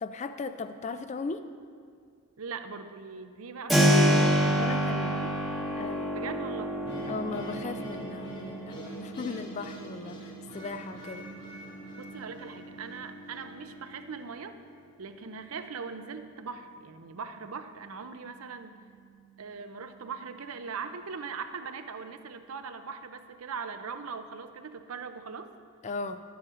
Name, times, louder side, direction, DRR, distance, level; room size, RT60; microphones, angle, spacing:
voice 1, 0.0-1.4 4.6-5.2 5.8-6.1 7.1-11.3 25.8-26.2, left 4 dB, 35° left, 10 dB, 0.3 m, -37 dB
voice 2, 2.4-5.3 6.1-6.7 11.9-14.6 15.0-18.7 19.4-25.5, right 5 dB, 90° right, 9 dB, 0.6 m, -40 dB
Keyboard (musical), 3.7-14.4, equal, ahead, 0.9 m, -29 dB
sound 1, 6.8-13.9, left 1 dB, 50° left, 2.2 m, -44 dB
11.0 x 9.4 x 3.7 m, 2.1 s
head